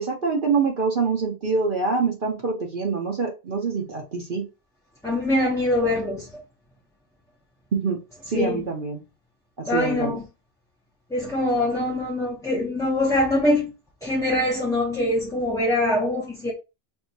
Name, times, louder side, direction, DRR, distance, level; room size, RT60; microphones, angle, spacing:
voice 1, 0.0-4.5 7.7-8.0 8.3-9.0 9.6-10.2, right 4 dB, 55° right, 0.9 m, -25 dB
voice 2, 5.0-6.4 8.3-8.6 9.7-10.2 11.1-13.7 14.0-16.5, left 1 dB, 5° left, 0.6 m, -23 dB
4.5 x 2.7 x 2.7 m
omnidirectional pair, 1.1 m